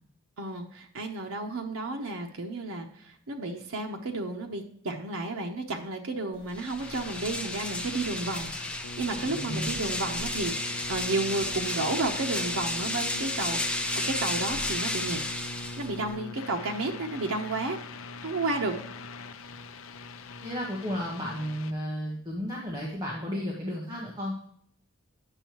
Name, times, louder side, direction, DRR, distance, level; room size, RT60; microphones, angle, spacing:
voice 1, 0.4-2.9 3.3-13.6 14.1-15.2 15.8-17.8 18.2-18.8, right 2 dB, 85° right, 2 dB, 0.9 m, -32 dB
sound 1, 6.5-16.2, left 1 dB, 5° left, 0.5 m, -33 dB
sound 2, 6.8-21.7, left 2 dB, 70° left, 0.5 m, -42 dB
voice 2, 9.2-9.7 20.4-24.3, equal, 20° right, -3 dB, 1.3 m, -33 dB
8.9 x 6.4 x 3.0 m, 0.63 s
head